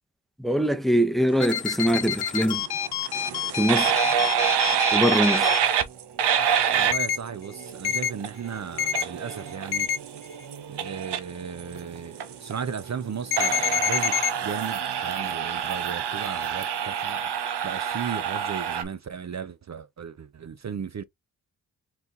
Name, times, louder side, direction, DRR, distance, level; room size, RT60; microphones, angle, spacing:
voice 1, 0.4-2.6 3.6-4.0 4.9-5.7, equal, ahead, 0.8 m, -23 dB
sound 1, 1.4-5.6 6.9-7.2 7.8-8.1 8.8-9.0 9.7-10.0 13.3-14.3, left 8 dB, 70° left, 0.7 m, -27 dB
sound 2, 1.9-18.8, right 8 dB, 80° right, 0.9 m, -27 dB
voice 2, 6.7-9.9 10.7-17.3 17.6-21.0, right 7 dB, 45° right, 0.6 m, -36 dB
4.5 x 3.8 x 2.6 m
cardioid pair, 45°, 40 cm